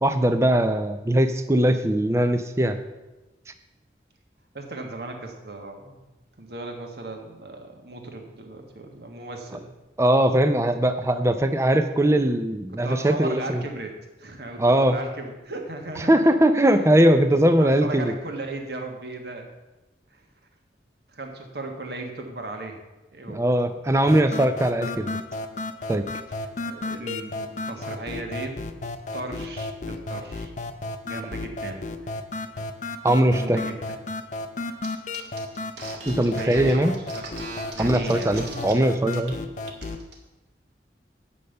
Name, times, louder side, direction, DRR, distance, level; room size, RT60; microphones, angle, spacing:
voice 1, 0.0-2.8 10.0-13.6 14.6-14.9 16.1-18.1 23.3-25.2 25.9-26.1 33.0-33.6 36.1-36.9 37.8-39.3, right 1 dB, 15° right, 9 dB, 0.5 m, -20 dB
voice 2, 4.5-6.0 6.4-9.7 12.8-13.9 14.2-16.4 16.6-16.7 17.6-19.5 20.1-20.2 21.1-22.7 23.1-23.4 26.3-28.6 29.1-30.5 31.0-32.2 33.3-33.8 36.3-37.4 37.7-38.5, right 2 dB, 65° right, 3 dB, 1.5 m, -36 dB
sound 1, 24.1-40.1, left 2 dB, 40° left, 0.5 m, -34 dB
sound 2, 34.8-34.9 35.1-38.7 39.1-39.3 39.6-40.1, right 3 dB, 80° right, 1.7 m, -39 dB
8.6 x 5.5 x 6.6 m, 1.1 s
head